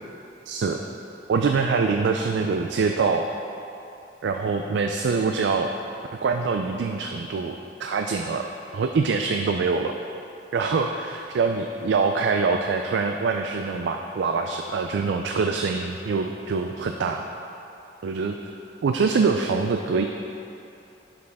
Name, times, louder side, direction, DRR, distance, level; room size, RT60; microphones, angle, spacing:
voice 1, 0.5-0.8 1.3-3.2 4.2-5.7 6.2-8.5 8.7-9.9 10.5-17.3 18.0-18.4 18.8-20.0, right 4 dB, 90° right, 4 dB, 0.4 m, -24 dB
11.0 x 5.0 x 3.5 m, 2.8 s
head